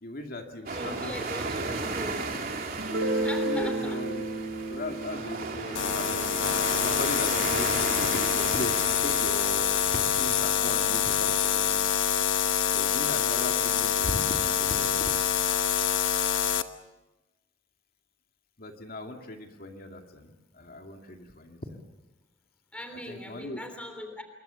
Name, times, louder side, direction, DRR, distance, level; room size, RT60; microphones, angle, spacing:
voice 1, 0.0-1.7 3.0-4.3 4.7-7.7 8.0-11.9 12.7-15.0 18.6-21.8 23.1-23.6, left 1 dB, 50° left, 3 dB, 2.4 m, -38 dB
voice 2, 0.7-2.4 3.2-4.0 22.7-24.2, left 1 dB, 5° left, 5 dB, 3.2 m, -40 dB
sound 1, 0.7-10.5, right 3 dB, 50° right, 3.2 m, -35 dB
Guitar, 2.8-8.3, right 2 dB, 85° right, 3.9 m, -34 dB
sound 2, 5.7-16.6, left 8 dB, 80° left, 1.1 m, -26 dB
26.5 x 22.5 x 7.0 m, 1.0 s
head